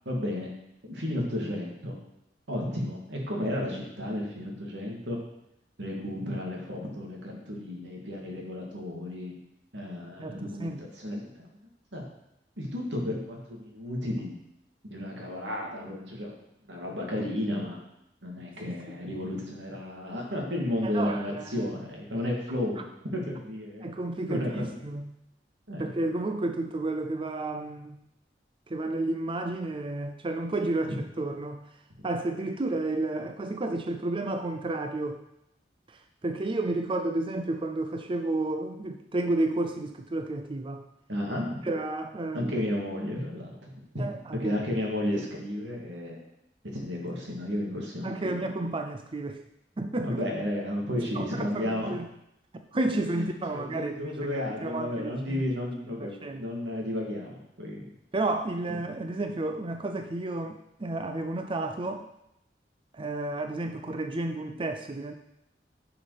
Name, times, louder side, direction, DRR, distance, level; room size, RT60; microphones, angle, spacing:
voice 1, 0.0-0.5 0.8-1.9 2.5-5.2 5.8-9.3 9.7-11.5 11.9-12.0 12.6-14.3 14.9-16.4 16.7-17.8 18.2-22.8 23.1-23.9 24.3-24.8 25.7-25.9 30.8-31.0 41.1-41.6 42.3-43.8 44.4-46.2 46.7-48.4 50.0-52.0 53.2-57.9, left 1 dB, 90° right, -1 dB, 2.6 m, -33 dB
voice 2, 10.2-10.8 18.6-19.0 20.8-21.7 23.8-25.1 25.8-28.0 28.7-31.7 32.0-35.2 35.9-40.8 41.6-42.6 44.0-44.5 46.7-46.8 48.0-49.4 49.8-50.2 51.1-52.1 52.5-55.5 56.0-56.4 58.1-62.1 62.9-65.1, right 2 dB, 30° right, 6 dB, 0.5 m, -31 dB
10.5 x 5.8 x 5.1 m, 0.81 s
head